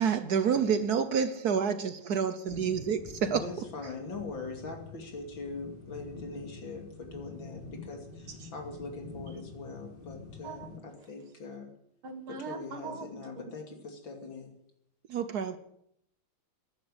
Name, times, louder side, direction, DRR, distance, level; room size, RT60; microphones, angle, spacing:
voice 1, 0.0-3.6 15.1-15.6, right 7 dB, 60° right, 1.2 m, -28 dB
sound 1, 2.5-10.8, left 3 dB, 25° left, 3.4 m, -47 dB
voice 2, 3.3-11.7 12.3-14.5, left 3 dB, 70° left, 3.3 m, -42 dB
voice 3, 12.0-13.1, right 5 dB, 90° right, 2.8 m, -40 dB
15.0 x 10.5 x 8.0 m
omnidirectional pair, 2.2 m